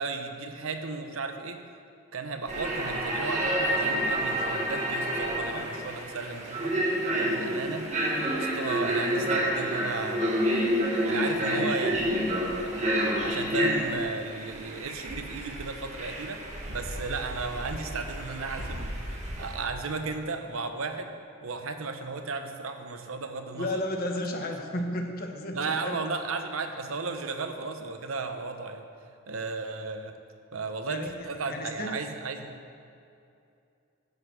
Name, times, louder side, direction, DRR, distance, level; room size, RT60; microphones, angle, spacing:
voice 1, 0.0-1.6 2.1-6.7 7.1-7.9 8.3-10.3 10.6-12.1 12.4-18.9 19.2-21.1 21.4-23.8 25.5-28.8 29.3-30.1 30.5-32.5, right 4 dB, 85° right, 7 dB, 0.9 m, -35 dB
sound 1, 2.5-19.6, equal, 35° right, 1.8 m, -29 dB
voice 2, 23.5-26.0 26.7-26.9 30.9-32.0, left 1 dB, 45° left, 3 dB, 1.2 m, -33 dB
10.5 x 8.0 x 6.1 m, 2.6 s
head